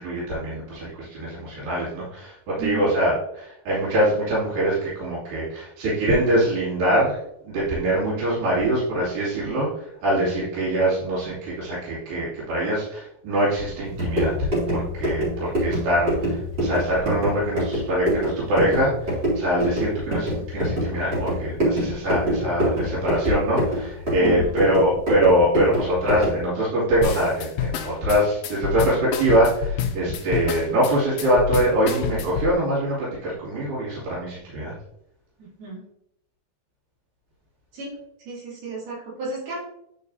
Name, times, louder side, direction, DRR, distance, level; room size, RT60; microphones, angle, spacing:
voice 1, 0.0-7.2 7.4-34.7, right 1 dB, 65° right, -9 dB, 4.2 m, -23 dB
voice 2, 2.6-2.9 24.2-24.5 35.6-35.8 37.7-38.0 38.2-39.6, right 3 dB, 85° right, -8 dB, 5.0 m, -33 dB
sound 1, 13.8-26.5, equal, 30° right, 3.1 m, -26 dB
sound 2, 27.0-32.5, left 8 dB, 80° left, 1.8 m, -28 dB
9.7 x 5.1 x 2.7 m, 0.76 s
omnidirectional pair, 4.3 m